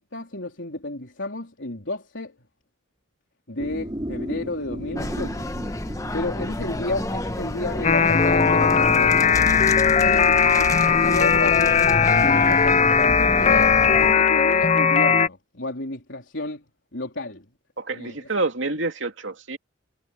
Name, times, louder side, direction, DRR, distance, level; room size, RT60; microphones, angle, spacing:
voice 1, 0.0-2.4 3.5-5.5 6.1-9.6 10.0-16.6 16.9-17.5 17.9-18.3, left 2 dB, 70° left, 3.8 m, -32 dB
sound 1, 3.6-11.4, equal, 20° right, 4.2 m, -37 dB
sound 2, 5.0-14.1, left 1 dB, 15° left, 1.1 m, -30 dB
sound 3, 7.8-15.3, left 6 dB, 35° left, 0.5 m, -18 dB
voice 2, 17.8-19.6, right 3 dB, 70° right, 2.6 m, -28 dB
head